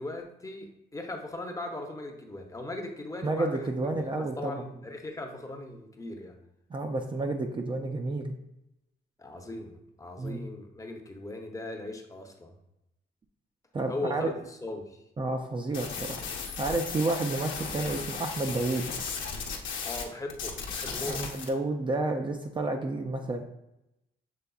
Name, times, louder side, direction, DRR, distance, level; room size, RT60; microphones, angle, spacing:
voice 1, 0.0-4.1 4.4-6.4 9.2-12.5 13.9-15.0 19.9-21.2, left 2 dB, 15° left, 3 dB, 0.7 m, -39 dB
voice 2, 3.2-4.5 6.7-8.3 10.2-10.4 13.7-14.3 15.2-16.2 16.6-18.9 21.0-23.4, right 2 dB, 25° right, 3 dB, 0.4 m, -30 dB
sound 1, 15.7-20.1 20.3-21.5, left 5 dB, 70° left, 0.8 m, -36 dB
6.7 x 3.3 x 2.3 m, 0.88 s
cardioid pair, 90°, 20 cm